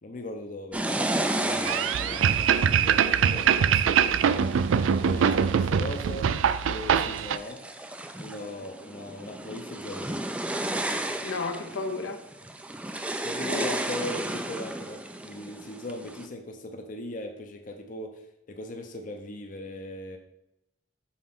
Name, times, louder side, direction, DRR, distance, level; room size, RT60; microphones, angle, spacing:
voice 1, 0.0-4.5 4.9-6.3 6.6-7.7 8.2-10.2 13.2-20.2, left 1 dB, 40° left, 4 dB, 0.6 m, -39 dB
sound 1, 0.7-5.5 6.1-6.6 7.0-16.3, right 1 dB, 5° right, 0.3 m, -33 dB
sound 2, 1.6-7.4, right 7 dB, 80° right, 0.4 m, -23 dB
voice 2, 11.2-12.2 12.8-13.2 13.6-13.7, left 3 dB, 80° left, 6 dB, 0.7 m, -34 dB
5.7 x 4.2 x 5.9 m, 0.86 s
head